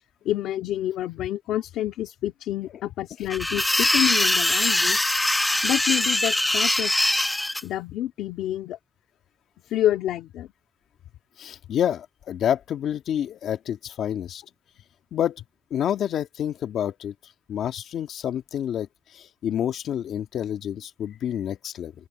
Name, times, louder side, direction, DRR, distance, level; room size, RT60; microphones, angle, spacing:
voice 1, 0.3-5.0 5.6-6.9 7.6-8.8 9.7-10.5, left 12 dB, 85° left, 1.9 m, -28 dB
sound 1, 3.3-7.6, left 1 dB, 10° left, 1.3 m, -22 dB
voice 2, 11.4-14.4 15.1-15.4 15.7-17.1 17.5-18.9 19.1-21.9, left 10 dB, 70° left, 1.7 m, -28 dB
open air
cardioid pair, 90°, 0 cm